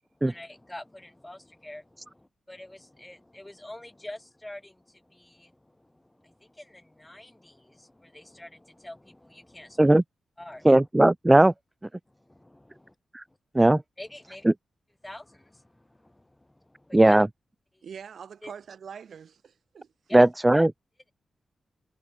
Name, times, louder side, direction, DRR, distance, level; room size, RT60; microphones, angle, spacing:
voice 1, 0.1-10.0 10.4-10.9 12.1-12.9 13.3-13.4 14.0-14.5 15.0-17.2 17.7-17.9 18.4-18.5 20.1-20.7, left 1 dB, 15° left, 3.1 m, -46 dB
voice 2, 10.6-11.5 13.1-13.2 13.5-13.8 14.5-14.6 16.9-17.3 20.1-20.7, right 1 dB, 20° right, 0.3 m, -17 dB
voice 3, 17.8-19.9, right 7 dB, 75° right, 4.5 m, -43 dB
supercardioid pair, 45°, 0 cm